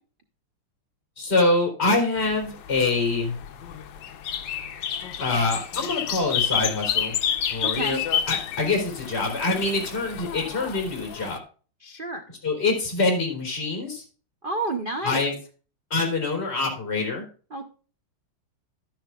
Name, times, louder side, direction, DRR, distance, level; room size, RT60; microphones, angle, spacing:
voice 1, 1.2-3.3 5.2-7.2 7.5-8.0 8.3-11.4 12.4-14.0 15.0-15.3 15.9-17.2, left 3 dB, 30° left, 1 dB, 3.9 m, -25 dB
sound 1, 2.2-11.4, left 8 dB, 65° left, 1.4 m, -30 dB
voice 2, 7.6-8.0 11.8-12.2 14.4-15.3 17.5-17.7, right 2 dB, 70° right, 5 dB, 0.5 m, -30 dB
12.0 x 10.5 x 2.4 m, 0.38 s
omnidirectional pair, 2.4 m